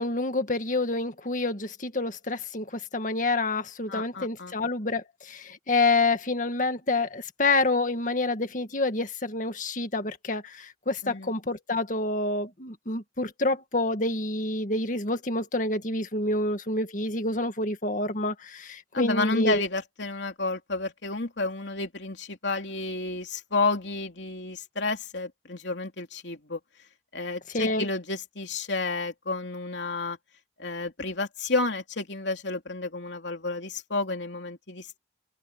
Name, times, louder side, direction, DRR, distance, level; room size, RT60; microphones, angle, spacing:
voice 1, 0.0-19.6 27.5-27.9, left 2 dB, 45° left, 2.1 m, -28 dB
voice 2, 3.9-4.5 11.0-11.3 18.9-26.6 27.1-30.2 30.6-35.0, left 3 dB, 80° left, 3.1 m, -31 dB
head